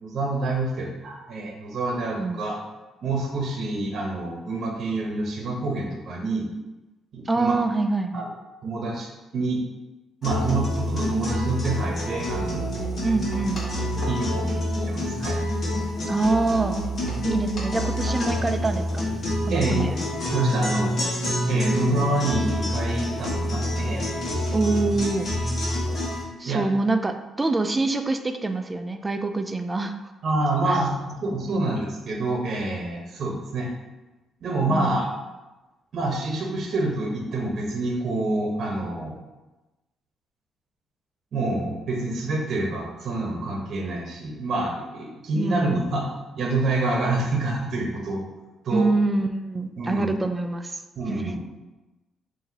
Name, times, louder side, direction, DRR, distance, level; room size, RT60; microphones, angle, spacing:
voice 1, 0.0-2.6 3.0-6.5 7.1-7.6 8.1-8.3 8.6-9.6 10.2-12.6 14.1-15.4 19.5-19.9 20.3-20.9 21.5-24.2 26.4-26.6 30.2-33.7 34.4-35.0 35.9-39.2 41.3-48.2 48.6-48.9 49.8-50.1 51.0-51.5, right 2 dB, 60° right, -1 dB, 0.9 m, -27 dB
voice 2, 7.3-8.2 13.0-13.6 16.1-16.8 17.2-19.1 19.4-19.9 24.5-25.3 26.4-29.9 30.7-30.8 31.5-31.7 34.7-34.9 45.3-45.9 48.7-50.8 51.1-51.4, right 3 dB, 20° right, 7 dB, 0.4 m, -25 dB
sound 1, 10.2-26.2, equal, 50° left, 1.4 m, -27 dB
5.6 x 2.7 x 2.8 m, 1.1 s
cardioid pair, 90°, 0 cm